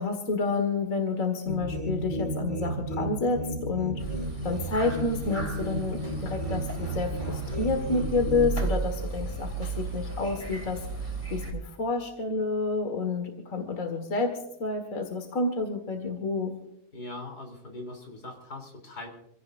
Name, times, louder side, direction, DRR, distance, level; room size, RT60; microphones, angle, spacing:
voice 1, 0.0-4.0 4.4-10.8 11.3-16.5, left 3 dB, 60° left, 5 dB, 2.1 m, -29 dB
sound 1, 1.4-8.7, right 1 dB, 25° right, 2.5 m, -33 dB
sound 2, 4.0-11.5, right 3 dB, 10° left, 3.3 m, -35 dB
voice 2, 16.9-19.1, left 2 dB, 85° left, 2 dB, 4.0 m, -41 dB
27.5 x 16.5 x 2.6 m, 0.81 s
omnidirectional pair, 1.6 m